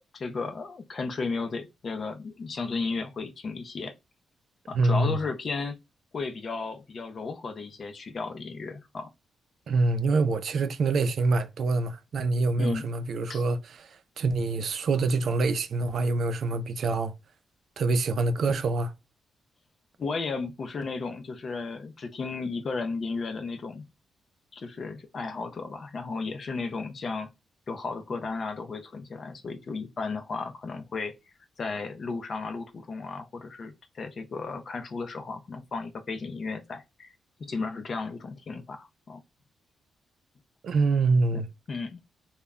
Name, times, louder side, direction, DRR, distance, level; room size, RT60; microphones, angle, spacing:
voice 1, 0.0-3.9 4.7-5.8 6.1-9.1 12.6-12.9 13.3-13.4 20.0-23.9 24.5-27.3 27.7-31.2 31.6-39.2 41.3-41.4 41.7-42.0, left 4 dB, 40° left, 0.4 m, -34 dB
voice 2, 4.7-5.2 9.7-17.1 17.8-18.9 40.6-41.5, right 3 dB, 60° right, 0.3 m, -25 dB
2.1 x 2.1 x 3.4 m
wide cardioid pair, 145°, 0 cm